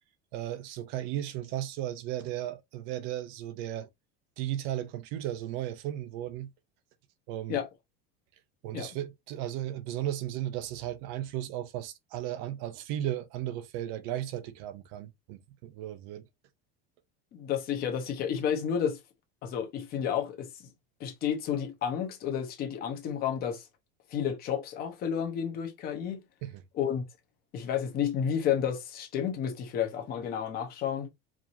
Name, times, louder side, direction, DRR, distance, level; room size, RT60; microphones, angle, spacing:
voice 1, 0.3-3.9 4.4-6.5 7.3-7.6 8.6-16.2 26.4-26.6, right 12 dB, 50° right, 0.6 m, -35 dB
voice 2, 17.3-19.0 19.4-20.5 21.0-23.6 24.1-26.2 26.7-27.0 27.5-31.1, left 8 dB, 30° left, 1.0 m, -31 dB
4.8 x 2.8 x 2.7 m
cardioid pair, 175°, 29 cm